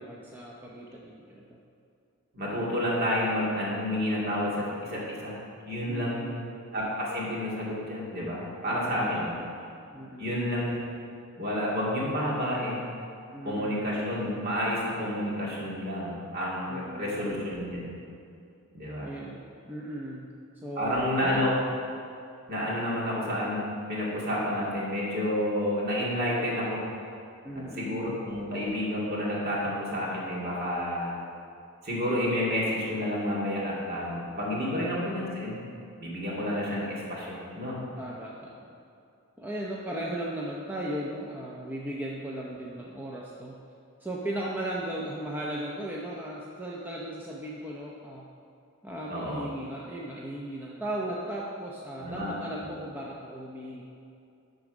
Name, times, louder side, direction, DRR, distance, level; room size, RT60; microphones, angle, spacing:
voice 1, 0.0-1.6 5.8-6.5 8.7-9.5 9.9-10.4 13.3-13.8 16.7-17.5 19.0-21.6 27.4-28.2 34.6-35.1 38.0-38.8 39.4-43.6 44.0-48.2 48.8-53.8, right 1 dB, 10° right, -4 dB, 0.6 m, -37 dB
voice 2, 2.3-5.4 5.7-6.4 6.7-9.3 10.2-10.9 11.4-12.9 13.4-17.9 18.7-19.1 20.8-21.5 22.5-23.6 23.9-26.8 27.5-31.1 31.8-35.6 36.0-37.8 49.1-49.5 52.0-52.4, left 1 dB, 45° right, -5 dB, 2.2 m, -30 dB
11.5 x 3.9 x 6.0 m, 2.5 s
head